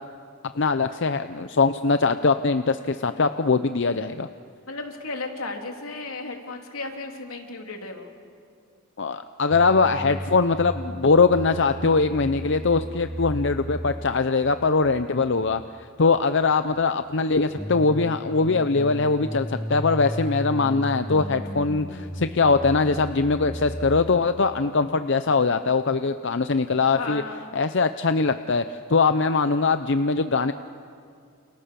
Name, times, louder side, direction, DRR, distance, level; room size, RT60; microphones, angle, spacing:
voice 1, 0.5-4.3 9.0-15.6 16.0-27.2 27.5-30.5, left 4 dB, 60° left, 10 dB, 0.7 m, -22 dB
voice 2, 4.7-8.1 27.0-27.4, left 3 dB, 85° left, 3 dB, 3.4 m, -34 dB
sound 1, 9.5-24.0, equal, 5° left, 5.1 m, -35 dB
30.0 x 29.0 x 7.0 m, 2.3 s
head